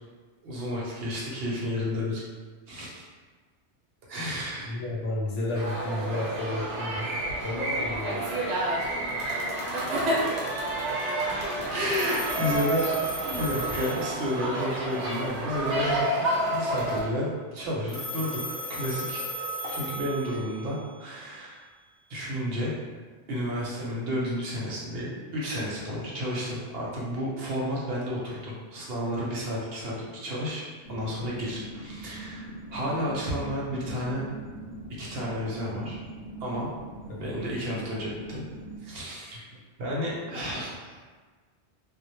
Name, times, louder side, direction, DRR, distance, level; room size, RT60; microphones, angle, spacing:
voice 1, 0.4-2.2 2.7-3.0 4.1-4.7 9.6-10.3 11.7-12.9 13.2-18.4 18.7-19.2 19.6-21.6 22.1-22.7 23.3-34.3 35.0-36.0 36.4-36.7 37.0-38.4 38.8-39.4 39.8-41.0, equal, 65° right, -5 dB, 0.8 m, -31 dB
voice 2, 4.6-7.1 7.4-8.3 11.3-11.6 37.1-37.3 39.5-39.6, left 1 dB, 90° left, -4 dB, 1.0 m, -32 dB
sound 1, 5.5-17.0, right 1 dB, 85° right, 0.9 m, -29 dB
Telephone, 11.9-14.7 17.9-20.7, equal, 30° left, 0.4 m, -35 dB
sound 2, 30.8-38.8, right 2 dB, 60° left, 0.8 m, -42 dB
2.1 x 2.1 x 2.9 m, 1.4 s
omnidirectional pair, 1.2 m